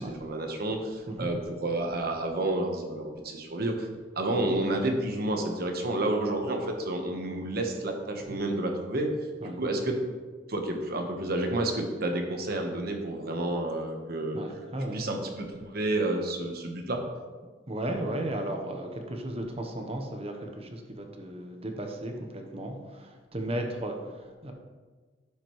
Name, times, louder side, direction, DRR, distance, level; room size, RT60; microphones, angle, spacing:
voice 1, 0.0-3.9 4.2-9.1 9.6-10.0 10.5-14.4 14.9-17.0, right 1 dB, 55° right, 3 dB, 1.1 m, -30 dB
voice 2, 14.3-15.1 17.7-24.5, right 1 dB, 35° right, 3 dB, 0.9 m, -35 dB
11.5 x 5.0 x 3.1 m, 1.4 s
head